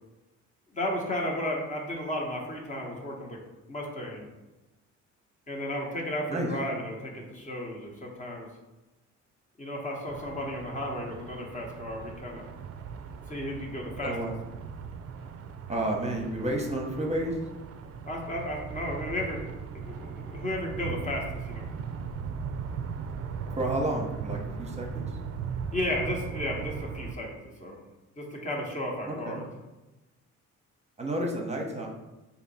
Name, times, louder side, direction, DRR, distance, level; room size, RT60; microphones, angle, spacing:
voice 1, 0.7-3.4 3.7-4.3 5.5-8.5 9.6-12.5 13.3-14.1 18.1-21.7 25.7-27.8 28.2-29.4, left 1 dB, 25° left, -1 dB, 0.9 m, -34 dB
sound 1, 10.1-27.1, right 6 dB, 55° right, 0.4 m, -38 dB
voice 2, 14.0-14.3 15.7-17.4 23.5-25.2 29.1-29.4 31.0-31.9, right 1 dB, 20° right, 1 dB, 0.8 m, -31 dB
3.3 x 2.8 x 4.1 m, 1.0 s
cardioid pair, 90°, 30 cm